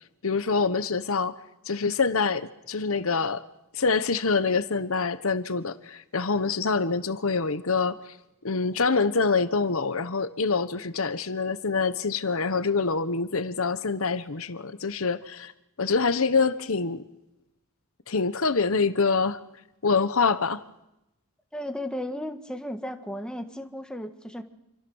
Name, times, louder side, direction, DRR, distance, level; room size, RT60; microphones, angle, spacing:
voice 1, 0.2-1.4 1.7-3.4 3.7-8.1 8.4-15.5 15.8-17.0 18.1-19.4 19.8-20.6, left 4 dB, 65° left, 12 dB, 1.1 m, -25 dB
voice 2, 21.5-24.4, left 1 dB, 5° left, 6 dB, 1.6 m, -34 dB
28.5 x 24.5 x 6.4 m, 0.89 s
head